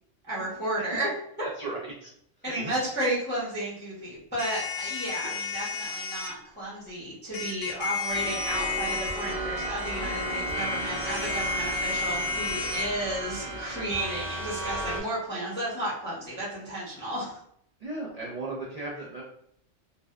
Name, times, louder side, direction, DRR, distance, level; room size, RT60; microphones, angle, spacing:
voice 1, 0.3-1.1 1.4-1.5 2.4-17.4, right 1 dB, 10° left, -8 dB, 0.6 m, -33 dB
voice 2, 1.4-2.1 2.5-2.9 5.2-5.4 17.8-19.2, right 2 dB, 75° right, -4 dB, 0.3 m, -36 dB
sound 1, 4.4-6.3 7.3-12.9, left 4 dB, 85° left, 0.9 m, -32 dB
sound 2, 8.1-15.0, right 1 dB, 35° right, 0.7 m, -34 dB
sound 3, 8.4-8.6 9.0-9.2 10.4-10.6 12.4-12.6 13.9-14.3 14.7-14.9, right 1 dB, 50° left, 0.6 m, -45 dB
2.6 x 2.1 x 2.3 m, 0.70 s
omnidirectional pair, 1.3 m